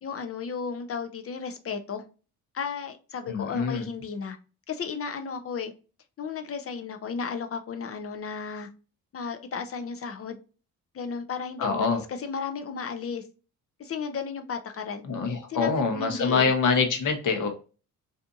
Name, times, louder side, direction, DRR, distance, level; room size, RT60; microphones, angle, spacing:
voice 1, 0.0-2.0 2.5-4.4 4.7-5.7 6.2-8.7 9.1-10.4 10.9-13.2 13.8-15.0 15.5-16.5, left 6 dB, 40° left, 7 dB, 0.5 m, -34 dB
voice 2, 3.3-3.9 11.6-12.0 15.0-17.5, left 5 dB, 55° left, 4 dB, 0.9 m, -25 dB
2.7 x 2.4 x 2.4 m, 0.34 s
supercardioid pair, 60°, 38 cm